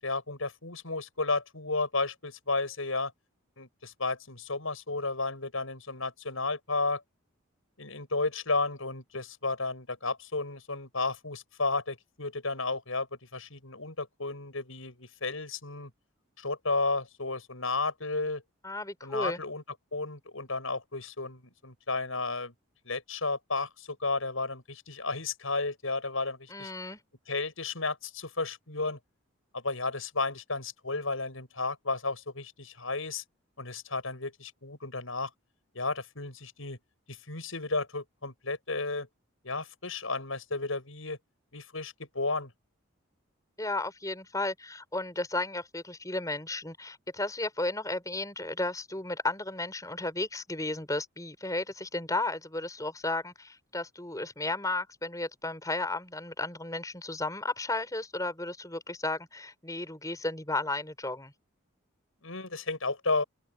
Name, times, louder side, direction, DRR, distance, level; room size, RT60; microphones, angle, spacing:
voice 1, 0.0-3.1 3.6-7.0 7.8-13.1 13.3-15.9 16.4-18.4 19.0-19.6 19.9-22.5 22.9-26.7 27.3-29.0 29.5-33.2 33.6-35.3 35.7-36.8 37.1-39.1 39.4-41.2 41.5-42.5 62.2-63.2, left 3 dB, 75° left, 7.1 m, -33 dB
voice 2, 18.6-19.4 26.5-27.0 43.6-61.3, left 2 dB, 15° left, 5.9 m, -34 dB
head